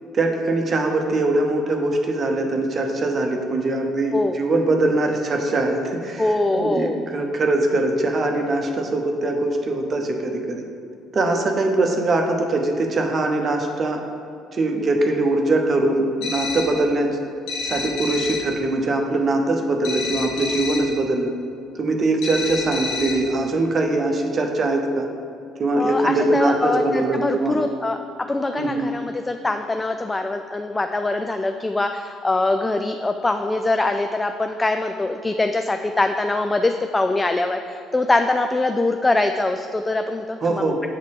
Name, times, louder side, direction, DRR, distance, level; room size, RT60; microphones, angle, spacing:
voice 1, 0.1-10.6 11.1-14.0 14.5-17.2 17.6-21.3 21.8-25.1 25.6-27.6 28.6-28.9 40.4-40.8, right 2 dB, 35° right, 3 dB, 0.8 m, -22 dB
voice 2, 6.2-7.0 25.8-28.0 28.3-40.7, left 2 dB, 20° left, 6 dB, 0.3 m, -23 dB
sound 1, 16.2-16.9 17.5-18.6 19.8-21.0 22.2-23.4, left 3 dB, 60° left, 0.9 m, -29 dB
7.3 x 4.1 x 4.8 m, 2.5 s
figure-of-eight pair, 50°, 0 cm